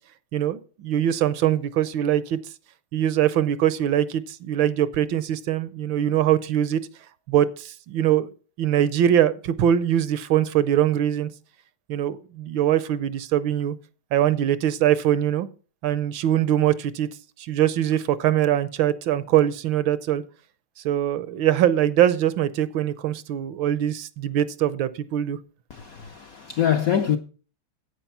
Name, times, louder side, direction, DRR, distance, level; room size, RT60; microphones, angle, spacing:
voice 1, 0.3-2.4 2.9-6.8 7.3-8.3 8.6-11.3 11.9-13.7 14.1-15.5 15.8-17.1 17.4-20.2 20.8-25.4, right 11 dB, 75° right, 1.4 m, -22 dB
voice 2, 25.7-27.2, left 9 dB, 65° left, 0.8 m, -24 dB
10.0 x 8.5 x 5.8 m
omnidirectional pair, 2.3 m